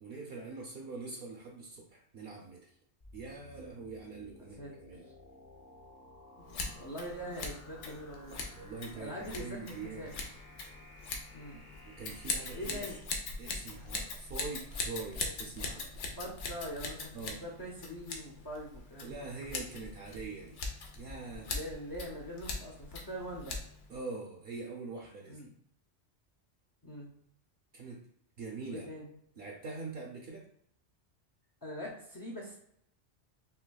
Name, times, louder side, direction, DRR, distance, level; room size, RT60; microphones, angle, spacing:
voice 1, 0.0-2.7 3.1-5.1 8.5-10.1 11.8-12.9 13.4-15.9 17.1-17.4 19.0-20.6 21.0-21.5 23.9-25.4 27.7-28.0 28.4-28.9 29.4-30.5, right 4 dB, 60° right, -1 dB, 0.8 m, -43 dB
sound 1, 3.0-13.0, left 2 dB, 45° left, 0.8 m, -55 dB
voice 2, 4.3-4.7 5.0-5.1 6.4-8.4 9.0-10.3 11.3-11.6 12.5-13.0 16.2-19.2 21.5-23.6 25.3-25.5 26.8-27.1 28.7-29.1 31.6-32.6, equal, 30° left, -3 dB, 0.4 m, -43 dB
Scissors, 6.5-24.0, left 3 dB, 80° left, 1.0 m, -41 dB
5.6 x 2.2 x 2.2 m, 0.70 s
omnidirectional pair, 1.2 m